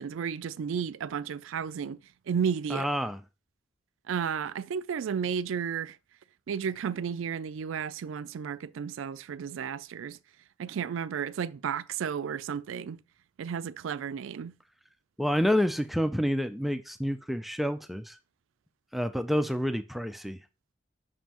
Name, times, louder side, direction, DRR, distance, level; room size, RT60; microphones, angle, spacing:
voice 1, 0.0-2.0 2.3-2.9 4.1-6.0 6.5-10.2 10.6-13.0 13.4-14.5, right 7 dB, 85° right, 0.4 m, -33 dB
voice 2, 2.7-3.2 15.2-18.2 18.9-20.4, equal, ahead, 0.3 m, -28 dB
7.3 x 6.1 x 2.9 m
head